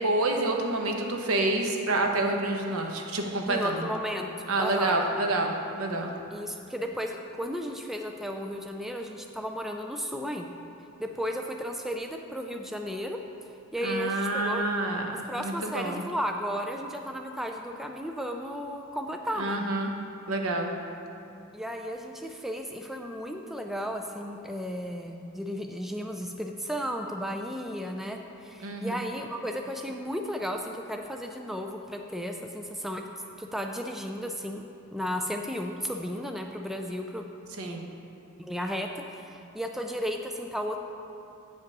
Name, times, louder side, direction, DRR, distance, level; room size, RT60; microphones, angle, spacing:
voice 1, 0.0-3.8 4.5-6.1 13.8-15.1 15.4-16.0 19.4-19.9 20.3-20.7 28.6-29.0 37.6-37.9, right 2 dB, 80° right, 2 dB, 0.9 m, -28 dB
voice 2, 3.5-4.3 4.6-4.9 6.3-10.5 11.0-13.2 13.7-14.6 15.3-19.6 21.5-33.0 33.4-34.6 34.9-37.3 37.6-37.8 38.4-38.9 39.2-40.8, equal, ahead, 3 dB, 0.3 m, -34 dB
8.2 x 5.3 x 5.3 m, 2.7 s
head